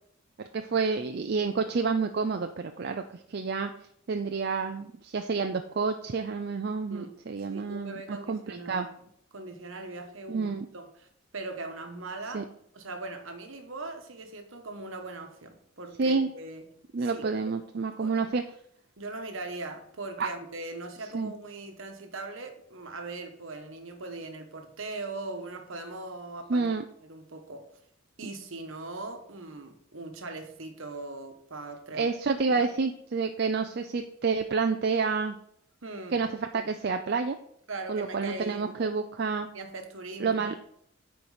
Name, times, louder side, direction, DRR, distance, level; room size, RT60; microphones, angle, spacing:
voice 1, 0.5-3.7 4.1-8.9 10.3-10.7 12.3-12.4 16.0-16.3 16.9-18.4 20.2-20.3 21.1-21.3 26.5-26.8 31.9-35.4 36.1-36.3 36.5-37.4 37.9-39.5 40.2-40.5, right 4 dB, 50° right, 6 dB, 0.4 m, -29 dB
voice 2, 6.9-11.1 11.3-12.5 12.7-16.7 17.0-17.2 18.0-18.3 19.0-26.7 27.0-27.7 28.2-32.1 32.5-32.7 35.8-36.2 37.7-38.8 39.5-40.6, right 2 dB, 65° right, 6 dB, 1.2 m, -40 dB
9.4 x 4.6 x 4.9 m, 0.70 s
head